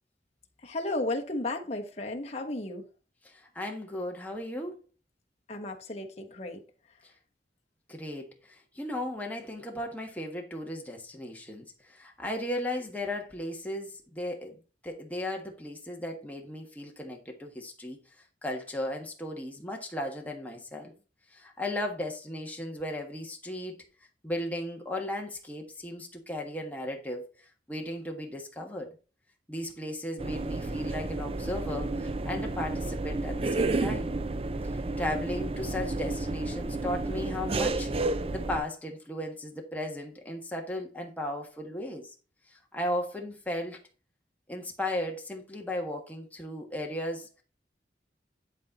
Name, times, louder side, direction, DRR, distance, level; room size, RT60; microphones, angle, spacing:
voice 1, 0.6-2.9 5.5-6.6, left 2 dB, 35° left, 1.3 m, -34 dB
voice 2, 3.2-4.8 7.0-7.1 7.9-14.6 14.8-20.9 21.3-23.8 24.2-28.9 29.5-34.1 34.7-42.1 42.5-43.8 44.5-47.3, left 1 dB, 10° left, 1.5 m, -36 dB
sound 1, 30.2-38.6, right 2 dB, 35° right, 0.5 m, -31 dB
11.0 x 4.2 x 4.1 m
head